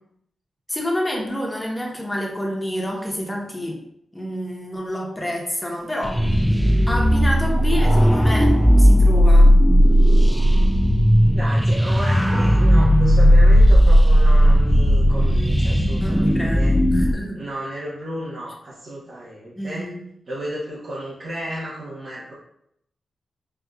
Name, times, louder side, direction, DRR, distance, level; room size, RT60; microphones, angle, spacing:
voice 1, 0.7-3.8 4.1-6.2 6.9-9.6 16.0-17.4 19.6-20.0, equal, 15° left, -1 dB, 1.0 m, -28 dB
sound 1, 6.0-17.1, equal, ahead, 0.3 m, -15 dB
voice 2, 11.2-16.8 17.3-19.9 20.3-22.3, right 1 dB, 65° right, -7 dB, 0.9 m, -33 dB
5.9 x 2.5 x 2.4 m, 0.75 s
cardioid pair, 80°, 0 cm